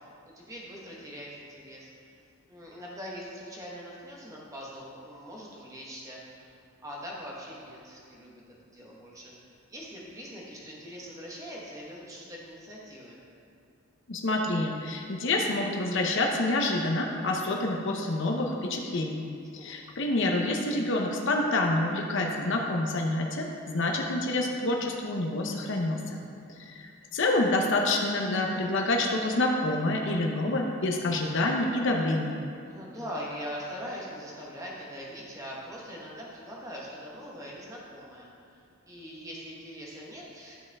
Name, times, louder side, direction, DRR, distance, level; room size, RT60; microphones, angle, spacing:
voice 1, 0.2-1.9 2.5-6.2 6.8-8.4 8.7-9.3 9.7-13.2 19.6-19.8 26.3-26.6 32.6-38.3 38.8-40.5, equal, 15° right, -4 dB, 1.2 m, -42 dB
voice 2, 14.1-19.3 19.5-26.2 26.6-32.3, left 2 dB, 55° left, 1 dB, 0.7 m, -27 dB
12.0 x 5.4 x 3.5 m, 2.4 s
head